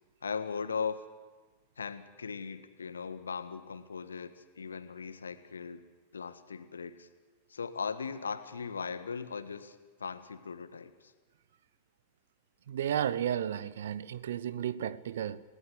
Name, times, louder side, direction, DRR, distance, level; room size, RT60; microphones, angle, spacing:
voice 1, 0.2-1.0 1.8-5.8 6.1-7.1 7.5-11.1, left 5 dB, 70° left, 1.5 m, -38 dB
voice 2, 12.7-15.4, right 10 dB, 60° right, 0.9 m, -33 dB
28.5 x 17.5 x 8.1 m
figure-of-eight pair, 90°, 0 cm